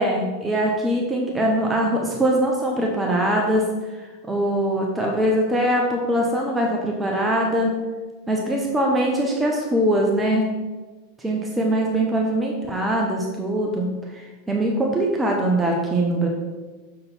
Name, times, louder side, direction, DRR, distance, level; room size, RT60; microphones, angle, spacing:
voice 1, 0.0-3.7 4.0-7.7 8.3-10.5 11.2-16.3, right 1 dB, 15° right, -1 dB, 1.0 m, -22 dB
6.8 x 3.9 x 4.3 m, 1.3 s
hypercardioid pair, 90°, 0 cm